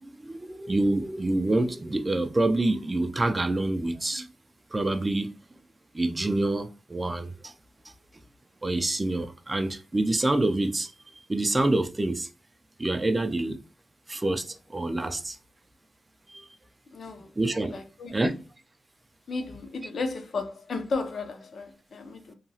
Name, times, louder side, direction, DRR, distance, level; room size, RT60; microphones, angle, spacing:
voice 1, 0.0-4.3 4.7-5.4 5.9-7.5 7.8-7.9 8.6-12.3 12.8-13.6 14.1-15.4 16.3-16.5 17.4-17.8 18.1-18.4, right 2 dB, 20° right, 0.3 m, -27 dB
voice 2, 16.9-17.3 17.7-18.3 19.3-22.3, left 3 dB, 60° left, 0.5 m, -34 dB
2.8 x 2.3 x 2.7 m
wide cardioid pair, 100°, 0 cm